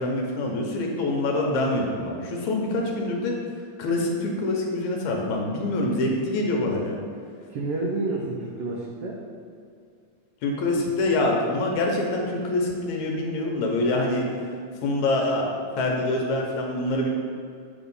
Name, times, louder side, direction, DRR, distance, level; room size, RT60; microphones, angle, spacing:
voice 1, 0.0-3.4 3.8-7.0 10.4-14.3 14.8-15.5 15.8-17.1, left 2 dB, 75° left, 0 dB, 2.0 m, -25 dB
voice 2, 7.5-9.2, right 2 dB, 90° right, -2 dB, 1.3 m, -29 dB
8.3 x 3.0 x 5.3 m, 2.3 s
omnidirectional pair, 3.7 m